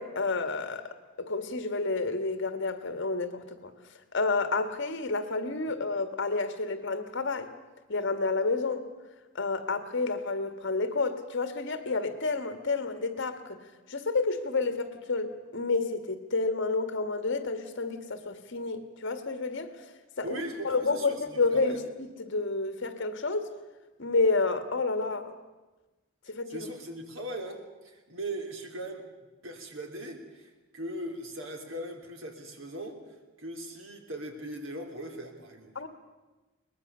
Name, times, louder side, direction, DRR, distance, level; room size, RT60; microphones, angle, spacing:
voice 1, 0.0-3.7 4.1-7.5 7.9-8.9 9.3-13.6 13.9-19.7 20.2-23.5 24.0-25.3 26.3-26.7 35.7-35.9, left 3 dB, 65° left, 9 dB, 1.8 m, -30 dB
voice 2, 20.2-21.8 26.5-29.0 29.4-33.0 33.4-35.7, right 1 dB, 75° right, 4 dB, 3.2 m, -39 dB
22.5 x 20.0 x 6.8 m, 1.2 s
head